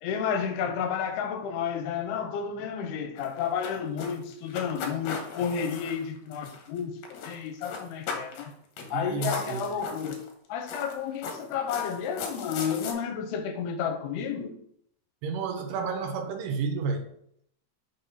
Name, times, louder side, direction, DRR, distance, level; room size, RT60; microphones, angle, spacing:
voice 1, 0.0-8.5 8.9-10.2 10.5-14.6, left 7 dB, 85° left, 2.7 m, -31 dB
sound 1, 3.2-6.8 7.0-7.4 7.6-8.5 8.8-8.9 9.2-10.3 10.7-12.9, left 6 dB, 70° left, 2.7 m, -37 dB
voice 2, 8.8-9.8 15.2-17.1, right 5 dB, 85° right, 2.8 m, -31 dB
6.2 x 4.1 x 5.3 m
omnidirectional pair, 4.7 m